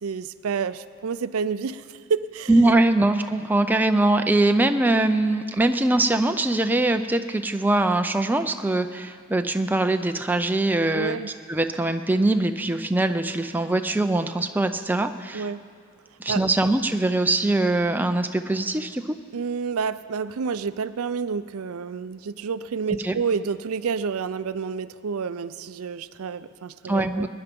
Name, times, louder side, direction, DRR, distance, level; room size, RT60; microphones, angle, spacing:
voice 1, 0.0-2.6 10.9-11.3 15.3-15.6 16.3-16.4 19.3-27.3, right 5 dB, 85° right, 14 dB, 0.5 m, -29 dB
voice 2, 2.5-11.2 11.5-15.5 16.2-19.2 23.0-23.1 26.8-27.3, right 2 dB, 10° right, 7 dB, 0.4 m, -22 dB
22.0 x 10.5 x 5.3 m, 2.1 s
head